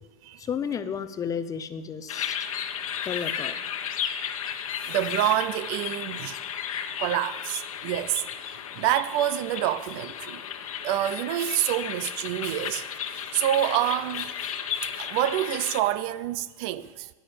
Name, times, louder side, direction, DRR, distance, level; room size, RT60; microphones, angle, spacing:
voice 1, 0.4-2.5 3.0-3.6, left 7 dB, 20° left, 0.7 m, -32 dB
sound 1, 2.1-15.8, left 9 dB, 80° left, 1.3 m, -34 dB
voice 2, 4.8-6.4 7.0-10.4 10.8-14.5 15.0-17.1, right 13 dB, 45° right, 0.6 m, -27 dB
10.0 x 9.7 x 8.7 m
hypercardioid pair, 130°, 17 cm